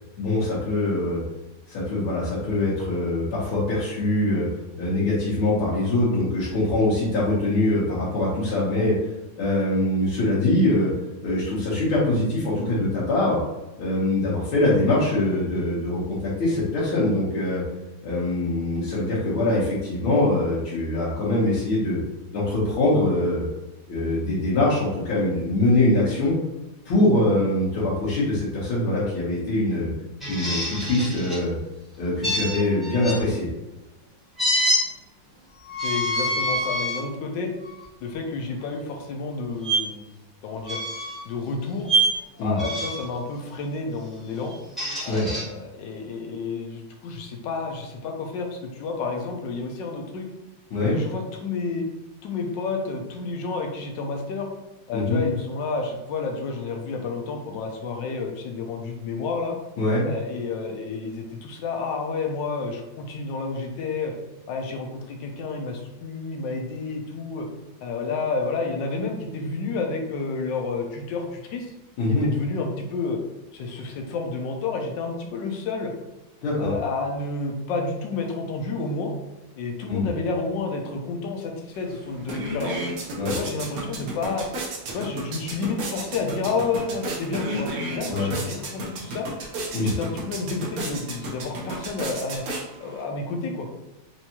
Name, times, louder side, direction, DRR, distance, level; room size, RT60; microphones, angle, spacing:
voice 1, 0.2-1.2 1.7-4.5 4.8-9.0 9.4-10.9 11.2-13.4 13.8-17.6 18.0-22.0 22.3-23.5 23.9-26.3 26.9-29.9 30.3-31.6 32.0-33.5 42.4-42.6 45.1-45.3 50.7-51.0 54.9-55.2 59.8-60.1 72.0-72.3 76.4-76.7 79.9-80.1 83.2-83.4 88.1-88.3 89.7-89.9, left 2 dB, 85° left, -8 dB, 1.9 m, -23 dB
sound 1, 30.2-31.4 32.2-33.2 34.4-34.8 35.7-37.0 37.6-37.8 39.6-39.8 40.6-41.2 41.8-42.2 42.6-43.1 44.5-45.4, right 1 dB, ahead, 0.8 m, -25 dB
voice 2, 35.8-37.5 38.0-40.1 40.4-40.8 41.2-41.9 42.4-44.5 45.0-50.3 50.9-51.8 52.2-54.5 54.9-59.6 60.0-64.1 64.5-67.5 67.8-71.7 72.1-73.2 73.5-75.9 76.6-79.1 79.6-82.8 83.3-84.5 84.9-89.3 89.8-92.4 92.8-93.7, left 4 dB, 70° left, 3 dB, 1.2 m, -30 dB
sound 2, 81.7-81.8 82.1-93.0, right 1 dB, 60° right, 1.0 m, -33 dB
4.5 x 2.7 x 2.8 m, 1.0 s
omnidirectional pair, 2.2 m